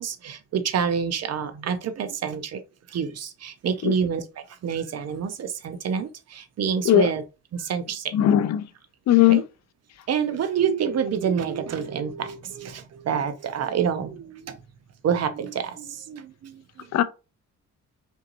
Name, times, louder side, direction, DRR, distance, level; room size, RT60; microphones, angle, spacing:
voice 1, 0.0-2.6 2.9-7.2 7.5-8.1 9.3-9.4 10.1-14.6 15.0-16.9, right 7 dB, 55° right, 0.8 m, -27 dB
voice 2, 8.1-8.7 9.1-9.4 16.9-17.0, left 12 dB, 60° left, 0.5 m, -18 dB
4.5 x 3.8 x 2.6 m
cardioid pair, 90°, 30 cm